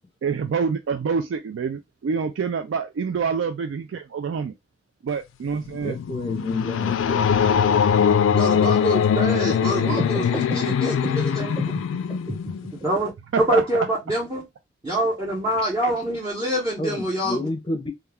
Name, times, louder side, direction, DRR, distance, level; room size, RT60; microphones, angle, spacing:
voice 1, 0.2-4.5 5.0-6.0 9.7-10.0 13.3-13.6, right 5 dB, 75° right, 0.3 m, -26 dB
sound 1, 5.5-12.9, left 7 dB, 85° left, 0.3 m, -22 dB
voice 2, 5.8-7.3 16.8-17.9, left 1 dB, 25° left, 0.6 m, -30 dB
voice 3, 8.3-11.6 12.8-13.1 13.4-14.5 14.8-17.5, right 1 dB, 20° right, 0.8 m, -25 dB
sound 2, 9.9-12.9, equal, ahead, 0.9 m, -32 dB
2.3 x 2.2 x 3.4 m
head